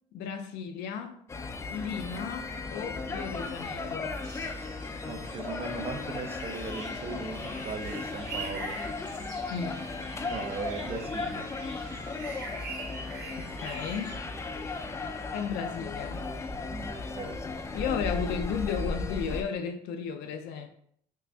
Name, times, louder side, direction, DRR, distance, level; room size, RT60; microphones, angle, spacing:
voice 1, 0.1-1.2 1.7-4.2 9.5-9.8 13.4-14.2 15.3-16.2 17.7-20.7, left 7 dB, 90° left, 5 dB, 0.4 m, -34 dB
sound 1, 1.3-19.4, left 3 dB, 15° left, 0.3 m, -36 dB
sound 2, 4.2-14.1, right 3 dB, 85° right, 1.4 m, -44 dB
voice 2, 5.0-8.8 10.2-11.5 16.7-17.4, right 4 dB, 35° right, 5 dB, 0.6 m, -38 dB
3.3 x 2.5 x 3.3 m, 0.66 s
cardioid pair, 110°, 17 cm